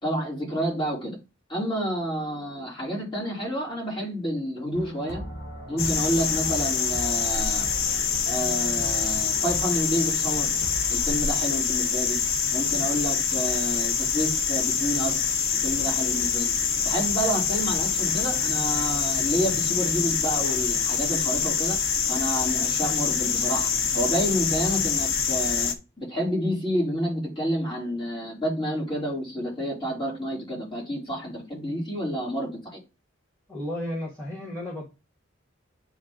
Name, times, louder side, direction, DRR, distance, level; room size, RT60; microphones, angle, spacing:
voice 1, 0.0-1.2 1.5-5.2 5.7-7.7 8.2-10.5 10.9-12.2 12.5-15.2 15.6-16.5 16.8-21.8 22.1-23.7 23.9-32.8, equal, 25° left, 3.5 m, -29 dB
sound 1, 4.7-11.1, equal, 60° left, 1.7 m, -39 dB
sound 2, 5.8-25.7, left 6 dB, 85° left, 0.8 m, -25 dB
voice 2, 33.5-35.0, left 1 dB, 10° left, 1.7 m, -33 dB
8.6 x 3.3 x 3.8 m
head